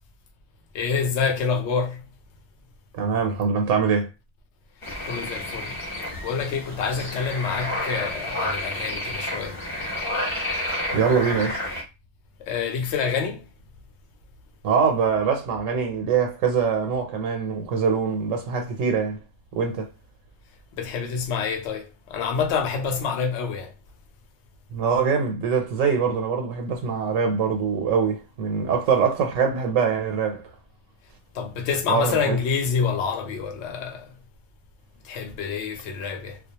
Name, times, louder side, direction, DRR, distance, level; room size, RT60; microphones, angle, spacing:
voice 1, 0.7-2.0 5.0-5.7 6.2-9.6 12.4-13.4 20.7-23.7 31.3-34.1 35.0-36.4, left 6 dB, 70° left, 0.8 m, -27 dB
voice 2, 2.9-4.1 10.9-11.6 14.6-19.2 19.5-19.9 24.7-30.4 31.9-32.4, right 6 dB, 90° right, 0.9 m, -23 dB
sound 1, 4.8-11.8, left 1 dB, 30° left, 1.0 m, -30 dB
2.3 x 2.1 x 2.8 m
omnidirectional pair, 1.3 m